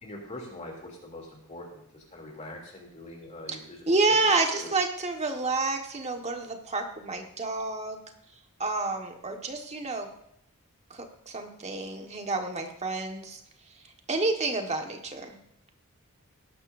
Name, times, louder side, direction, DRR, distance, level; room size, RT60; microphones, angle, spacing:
voice 1, 0.0-4.7, left 1 dB, 30° left, -1 dB, 3.0 m, -43 dB
voice 2, 3.9-8.0 8.6-10.1 10.9-13.4 14.1-15.4, right 3 dB, 30° right, 3 dB, 1.6 m, -29 dB
18.5 x 11.0 x 2.7 m, 0.76 s
head